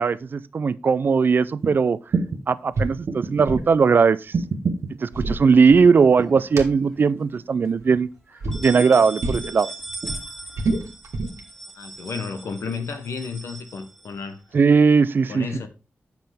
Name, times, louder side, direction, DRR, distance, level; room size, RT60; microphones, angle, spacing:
voice 1, 0.0-2.0 2.5-4.3 5.0-8.1 8.6-9.7 14.5-15.7, right 5 dB, 50° right, 0.3 m, -18 dB
sound 1, 1.6-1.7 2.1-2.4 3.1-3.6 4.3-4.9 5.8-6.4 6.8-7.4 8.5-9.1 10.0-10.1, right 4 dB, 70° right, 1.0 m, -28 dB
sound 2, 2.7-3.0 3.2-3.7 4.9-6.1 6.6-6.7 7.7-8.1 8.4-8.6 9.2-9.5 9.9-11.4, right 2 dB, 85° right, 1.4 m, -27 dB
sound 3, 5.8-6.8 7.2-7.3 7.6-7.7 8.3-14.5, right 2 dB, 5° left, 1.6 m, -39 dB
voice 2, 11.7-14.4 15.3-15.7, left 5 dB, 90° left, 1.0 m, -32 dB
7.6 x 5.8 x 3.5 m
wide cardioid pair, 145°, 5 cm